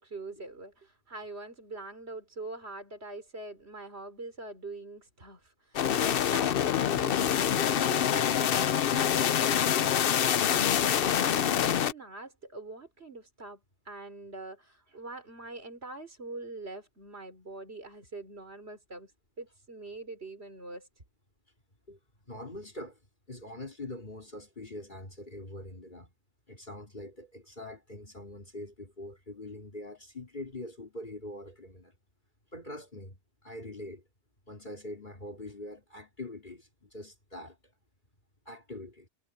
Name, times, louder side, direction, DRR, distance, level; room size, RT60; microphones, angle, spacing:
voice 1, 0.0-19.1 19.4-20.9, right 2 dB, 65° right, 4.2 m, -44 dB
sound 1, 5.7-11.9, left 9 dB, 60° left, 0.8 m, -26 dB
voice 2, 22.3-23.0 23.3-26.1 26.5-31.9 32.5-34.0 34.5-37.6 38.4-39.1, left 1 dB, 45° left, 3.4 m, -43 dB
omnidirectional pair, 1.2 m